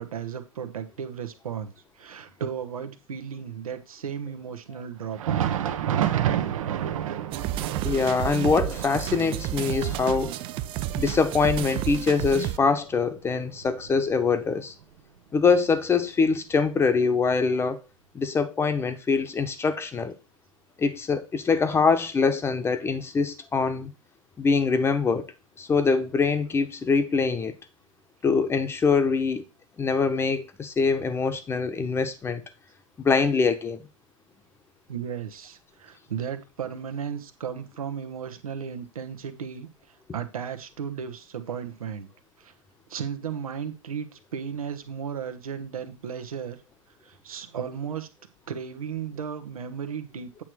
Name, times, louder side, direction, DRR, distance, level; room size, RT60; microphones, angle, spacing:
voice 1, 0.0-5.7 34.9-39.7 40.1-42.1 42.4-42.5 42.9-46.6 47.0-48.1 48.5-50.4, right 7 dB, 85° right, 1.2 m, -35 dB
Thunder, 5.0-14.5 14.8-15.0 15.7-15.8 16.8-16.9, right 10 dB, 70° right, 1.0 m, -31 dB
sound 1, 7.3-12.6, right 13 dB, 30° right, 0.4 m, -31 dB
voice 2, 7.8-10.4 10.9-14.7 15.3-17.8 18.1-20.1 20.8-23.9 24.4-25.3 25.6-27.5 28.2-29.4 29.8-32.4 33.0-33.8, left 5 dB, 15° left, 0.9 m, -24 dB
8.7 x 3.2 x 6.2 m
hypercardioid pair, 125°, 18 cm